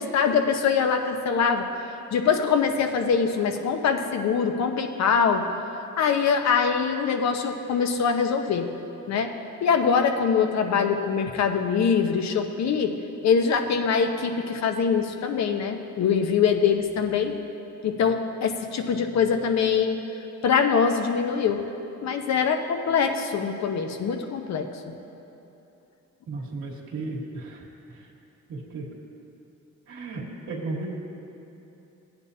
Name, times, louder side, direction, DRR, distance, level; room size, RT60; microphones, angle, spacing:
voice 1, 0.0-1.7 2.1-5.4 6.0-8.7 9.1-9.3 9.6-13.0 13.2-17.4 17.8-20.0 20.4-21.6 22.0-24.7, left 6 dB, 60° left, 6 dB, 0.9 m, -23 dB
voice 2, 26.3-27.6 28.7-28.8 29.9-30.2 30.5-30.9, right 3 dB, 70° right, -5 dB, 1.6 m, -33 dB
16.5 x 9.0 x 2.8 m, 3.0 s
cardioid pair, 90°, 30 cm